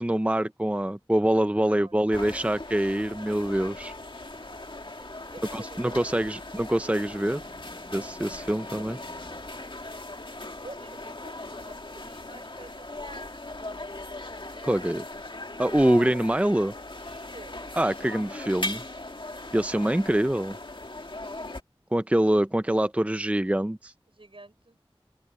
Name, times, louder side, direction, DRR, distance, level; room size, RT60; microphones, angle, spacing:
voice 1, 0.0-3.9 5.5-7.4 7.9-9.0 14.6-15.1 15.6-16.7 17.7-18.8 19.5-20.6 21.9-23.9, right 1 dB, 15° right, 0.6 m, -25 dB
voice 2, 1.6-2.7 4.5-6.4 6.8-7.2 8.5-9.8 10.6-13.4 16.0-16.2 17.2-17.8 24.1-24.8, right 2 dB, 70° right, 4.8 m, -50 dB
sound 1, 2.1-21.6, left 2 dB, 60° left, 2.1 m, -39 dB
sound 2, 6.8-10.4, left 1 dB, 25° left, 6.5 m, -55 dB
open air
wide cardioid pair, 45°, 10 cm